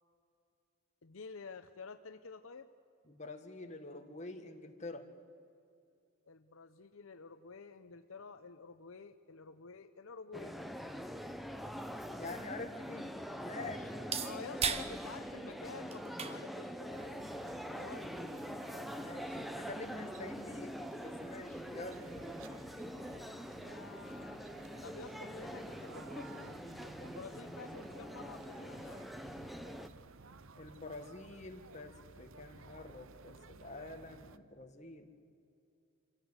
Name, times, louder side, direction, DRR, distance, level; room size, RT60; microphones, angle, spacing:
voice 1, 1.0-2.7 6.3-10.6 14.2-17.3 17.7-18.1 22.5-22.7 23.6-24.4 24.8-26.6 27.0-29.1, left 4 dB, 65° left, 10 dB, 0.7 m, -50 dB
voice 2, 3.1-5.1 12.0-13.1 13.4-13.9 19.0-22.0 30.6-35.1, left 2 dB, 30° left, 4 dB, 1.7 m, -47 dB
sound 1, 10.3-29.9, equal, ahead, 0.8 m, -44 dB
sound 2, 13.3-19.6, right 6 dB, 30° right, 0.9 m, -43 dB
sound 3, 16.9-34.4, right 4 dB, 65° right, 0.7 m, -56 dB
25.5 x 16.5 x 8.1 m, 2.5 s
head